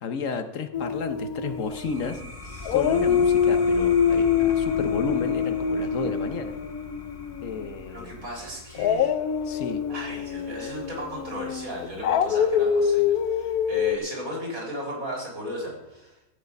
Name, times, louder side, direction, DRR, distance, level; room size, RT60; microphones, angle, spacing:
voice 1, 0.0-2.2 2.7-6.5 7.4-8.2 9.5-9.8, left 5 dB, 60° left, 9 dB, 1.3 m, -32 dB
Dog, 0.7-2.3 2.6-7.7 8.7-14.0, left 7 dB, 85° left, 1.2 m, -25 dB
sound 1, 1.4-12.6, left 1 dB, 25° left, 1.2 m, -41 dB
voice 2, 7.9-9.1 9.9-16.2, equal, 65° right, -2 dB, 4.4 m, -36 dB
14.0 x 9.4 x 5.3 m, 0.93 s
omnidirectional pair, 1.6 m